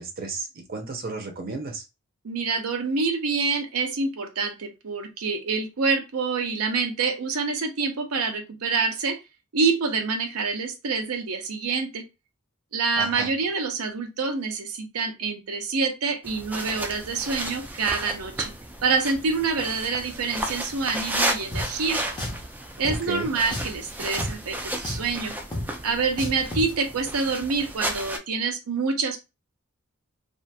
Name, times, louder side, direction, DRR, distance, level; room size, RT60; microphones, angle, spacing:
voice 1, 0.0-1.9 12.9-13.3 22.8-23.3, right 3 dB, 45° right, 0.6 m, -33 dB
voice 2, 2.2-9.2 9.5-12.0 12.7-18.5 18.8-22.0 22.8-25.4 25.8-29.2, right 4 dB, 85° right, 0.6 m, -26 dB
sound 1, 16.2-28.2, right 1 dB, 10° right, 0.4 m, -33 dB
Drum, 21.5-21.7 22.2-22.4 22.8-23.0 23.5-23.8 24.2-24.3 24.8-25.1 25.5-25.7 26.2-26.7, left 1 dB, 20° left, 0.7 m, -31 dB
2.8 x 2.4 x 2.2 m
head